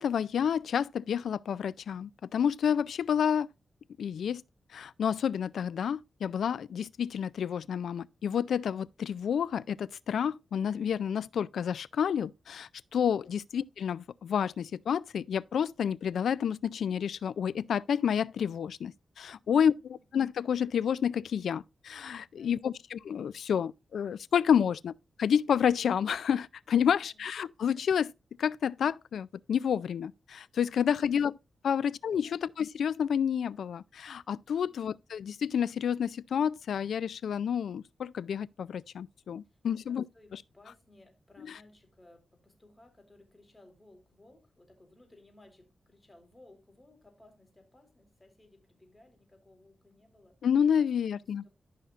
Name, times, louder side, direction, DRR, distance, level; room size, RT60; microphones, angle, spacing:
voice 1, 0.0-3.5 4.0-4.4 4.7-24.9 25.2-28.1 28.4-31.3 31.6-40.0 50.4-51.4, left 8 dB, 85° left, 0.3 m, -29 dB
voice 2, 13.1-13.4 19.4-20.1 22.3-22.7 26.8-27.2 31.0-31.1 32.2-32.5 39.4-50.4 51.0-51.5, left 2 dB, 20° left, 3.9 m, -60 dB
13.5 x 5.6 x 2.4 m
cardioid pair, 80°, 0 cm